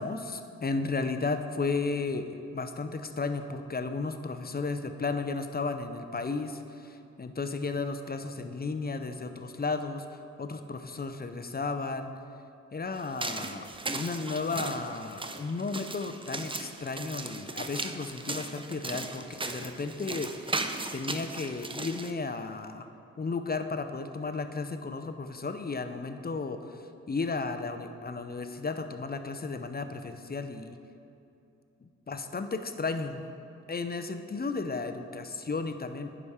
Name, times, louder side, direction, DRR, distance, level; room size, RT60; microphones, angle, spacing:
voice 1, 0.0-12.1 12.7-20.6 20.9-22.9 23.2-30.8 31.8-33.2 33.7-36.1, left 4 dB, 30° left, 8 dB, 0.6 m, -34 dB
sound 1, 13.0-22.1, right 2 dB, 15° right, 0.6 m, -37 dB
10.0 x 5.0 x 5.6 m, 2.7 s
cardioid pair, 60°, 31 cm